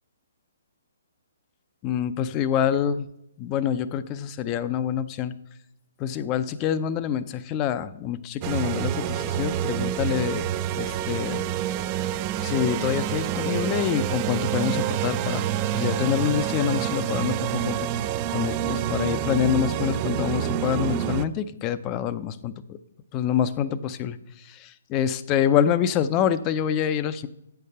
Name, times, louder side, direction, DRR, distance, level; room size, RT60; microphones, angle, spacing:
voice 1, 1.8-3.1 3.4-5.3 6.0-10.5 10.8-11.4 12.4-15.5 15.7-17.9 18.3-22.8 23.1-24.2 24.6-27.3, left 9 dB, 25° left, 13 dB, 0.5 m, -26 dB
sound 1, 8.4-21.3, right 11 dB, 30° right, 0.4 m, -27 dB
9.0 x 6.8 x 5.4 m, 0.84 s
hypercardioid pair, 140°, 0 cm